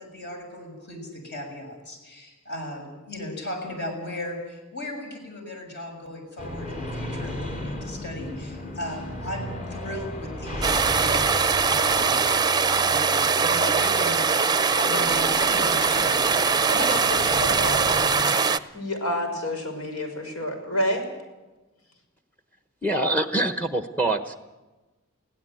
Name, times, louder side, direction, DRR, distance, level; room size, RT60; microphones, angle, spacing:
voice 1, 0.0-14.5 14.8-16.4 16.7-16.9, left 1 dB, 55° left, 3 dB, 6.9 m, -36 dB
sound 1, 6.4-18.2, left 1 dB, 35° left, 3.9 m, -36 dB
sound 2, 10.6-18.6, right 5 dB, 20° right, 0.7 m, -22 dB
voice 2, 16.7-21.0, left 1 dB, 80° left, 5 dB, 5.9 m, -30 dB
voice 3, 22.8-24.3, right 2 dB, 10° left, 8 dB, 1.0 m, -25 dB
22.5 x 17.0 x 9.3 m, 1.1 s
head